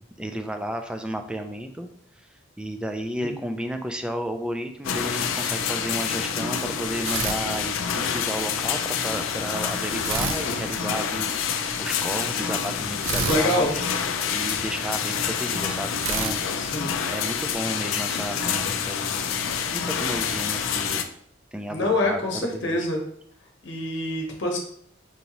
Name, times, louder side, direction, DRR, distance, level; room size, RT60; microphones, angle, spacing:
voice 1, 0.2-1.9 2.2-2.3 2.6-11.3 11.8-13.8 14.3-16.8 17.1-21.0 21.5-22.8, right 1 dB, 5° right, 6 dB, 0.3 m, -33 dB
sound 1, 4.8-21.0, left 7 dB, 80° left, 0.4 m, -27 dB
sound 2, 7.0-8.2 10.0-11.4 13.0-14.7 16.0-17.6, right 5 dB, 85° right, 0.4 m, -32 dB
voice 2, 13.3-13.7 16.6-17.0 21.7-23.0 23.6-24.6, left 1 dB, 60° left, 0 dB, 0.9 m, -25 dB
5.2 x 2.8 x 2.8 m, 0.66 s
head